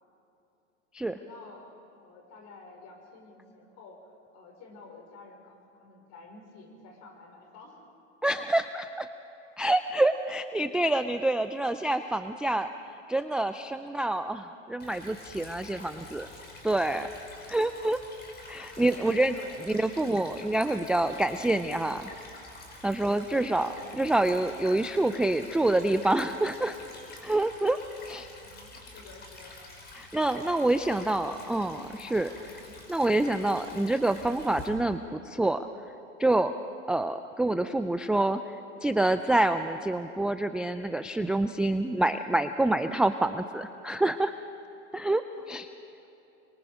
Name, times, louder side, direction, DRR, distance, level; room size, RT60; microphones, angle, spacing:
voice 1, 1.1-7.8 13.9-14.1 15.7-16.1 18.7-19.9 23.7-23.9 28.4-29.6 30.4-31.1 32.6-32.8 45.3-45.4 45.7-46.1, left 3 dB, 45° left, 2 dB, 5.4 m, -51 dB
voice 2, 8.2-9.1 9.6-12.7 13.1-16.3 16.6-17.1 17.5-18.0 18.5-19.3 19.7-22.1 22.8-26.8 27.2-27.8 28.1-28.3 30.0-32.3 32.9-35.7 36.2-36.5 36.9-38.4 38.8-44.3 44.9-45.2 45.5-45.7, right 2 dB, 5° right, 10 dB, 0.4 m, -27 dB
Stream / Trickle dribble, 14.8-34.7, left 2 dB, 25° left, 5.0 m, -48 dB
24.0 x 23.0 x 5.0 m, 2.8 s
hypercardioid pair, 95°, 36 cm